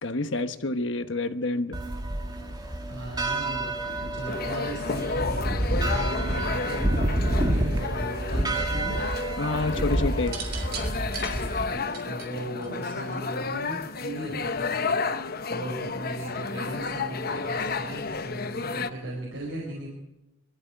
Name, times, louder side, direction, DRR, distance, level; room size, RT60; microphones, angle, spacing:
voice 1, 0.0-1.8 9.4-10.4, left 2 dB, 65° left, 9 dB, 1.2 m, -28 dB
sound 1, 1.7-11.6, right 1 dB, 20° right, 2.1 m, -29 dB
voice 2, 2.9-9.0 11.2-15.0 15.5-19.9, right 1 dB, 75° right, -1 dB, 4.4 m, -37 dB
sound 2, 4.3-18.9, left 4 dB, 50° left, 0.9 m, -32 dB
sound 3, 10.2-13.3 14.4-14.8, right 6 dB, 50° right, 3.6 m, -39 dB
22.5 x 14.0 x 9.0 m, 0.99 s
head